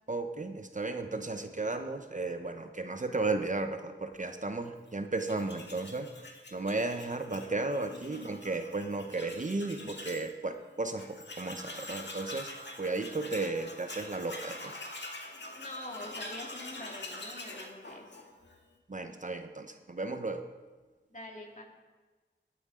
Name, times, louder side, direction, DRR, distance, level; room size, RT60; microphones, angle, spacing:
voice 1, 0.1-6.1 6.5-12.5 12.8-14.8 18.9-20.4, right 3 dB, 40° right, 7 dB, 0.8 m, -34 dB
Tools, 5.2-10.3 10.6-10.7 11.0-18.6, left 2 dB, 65° left, 1.8 m, -45 dB
voice 2, 7.9-8.3 15.3-18.3 21.1-21.6, left 1 dB, 40° left, 0 dB, 2.3 m, -45 dB
19.5 x 9.2 x 3.8 m, 1.3 s
wide cardioid pair, 65°, 20 cm